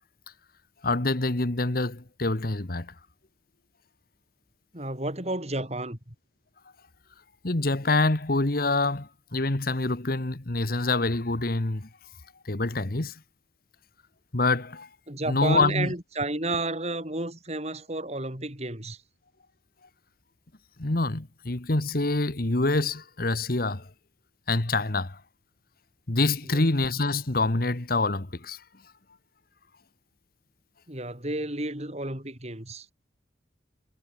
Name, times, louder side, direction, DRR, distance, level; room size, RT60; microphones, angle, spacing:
voice 1, 0.8-2.9 7.4-11.9 12.4-13.1 14.3-14.9 15.3-15.9 20.8-23.9 24.5-25.2 26.1-28.6, left 2 dB, 55° left, 1.5 m, -26 dB
voice 2, 4.7-6.1 15.1-19.0 26.5-26.6 30.9-32.9, right 2 dB, 35° right, 5.5 m, -32 dB
head